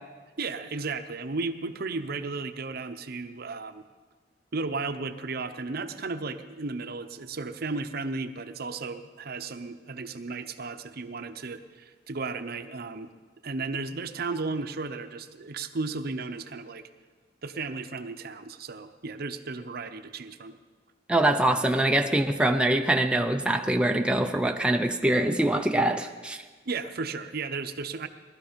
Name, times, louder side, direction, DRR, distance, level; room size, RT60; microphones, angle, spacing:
voice 1, 0.4-3.8 4.5-13.1 13.4-16.8 17.4-20.6 26.7-28.1, right 3 dB, 55° right, 9 dB, 0.7 m, -34 dB
voice 2, 21.1-26.4, right 1 dB, 5° right, 4 dB, 0.5 m, -24 dB
18.5 x 12.5 x 5.2 m, 1.4 s
head